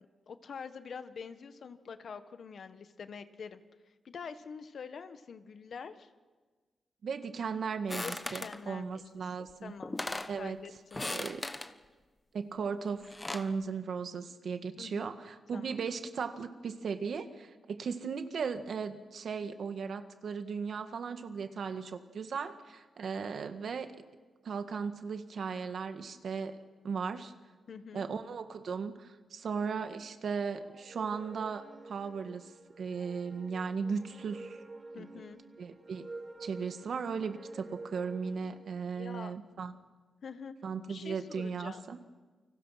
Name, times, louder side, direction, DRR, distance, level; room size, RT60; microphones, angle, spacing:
voice 1, 0.0-3.6 4.0-6.1 8.0-9.3 9.6-10.0 10.4-11.3 14.8-15.1 15.5-15.7 27.7-28.1 34.9-35.4 38.9-39.3 40.2-40.6 40.9-41.8, left 6 dB, 60° left, 10 dB, 1.4 m, -45 dB
voice 2, 7.0-9.7 10.3-10.6 11.0-11.4 12.3-23.9 24.4-26.5 26.8-27.3 27.9-32.5 32.8-34.6 34.9-35.1 35.6-36.1 36.4-39.8 40.6-42.0, right 5 dB, 65° right, 8 dB, 1.7 m, -37 dB
sound 1, 7.9-8.6 9.5-9.6 9.8-10.4 10.9-11.7 12.9-13.5, left 2 dB, 15° left, 1.1 m, -38 dB
sound 2, 30.7-38.8, right 2 dB, 25° right, 1.8 m, -49 dB
29.5 x 25.5 x 5.9 m, 1.4 s
wide cardioid pair, 120°, 0 cm